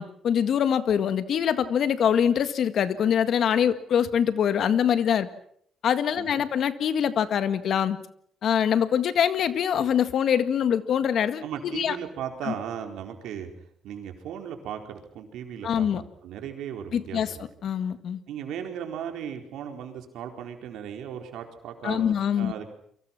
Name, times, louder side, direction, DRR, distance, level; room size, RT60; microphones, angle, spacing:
voice 1, 0.0-5.3 5.8-8.0 8.4-11.4 11.7-12.0 12.4-12.5 15.6-16.0 16.9-17.3 17.6-18.2 21.8-22.5, left 8 dB, 65° left, 12 dB, 1.8 m, -24 dB
voice 2, 6.2-6.5 11.4-13.5 13.8-17.4 18.3-22.7, right 8 dB, 85° right, 4 dB, 4.3 m, -37 dB
29.5 x 24.0 x 6.0 m, 0.65 s
cardioid pair, 90°, 0 cm